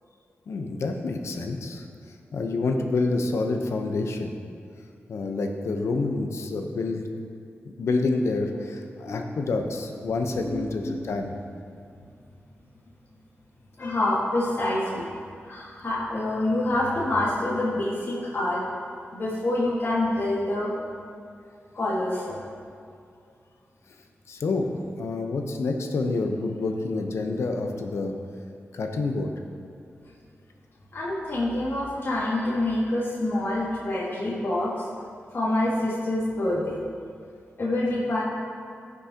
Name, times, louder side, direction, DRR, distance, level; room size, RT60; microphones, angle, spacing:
voice 1, 0.5-1.8 2.3-4.3 5.1-7.0 7.6-11.3 24.3-28.1 28.7-29.3, left 3 dB, 80° left, 4 dB, 0.8 m, -28 dB
voice 2, 9.0-9.4 10.4-10.6 13.8-15.0 15.4-18.6 19.1-20.7 21.7-22.4 30.9-34.8 35.3-36.8 37.6-38.2, left 1 dB, 55° left, -7 dB, 1.7 m, -26 dB
15.0 x 6.2 x 2.9 m, 2.4 s
cardioid pair, 65°, 5 cm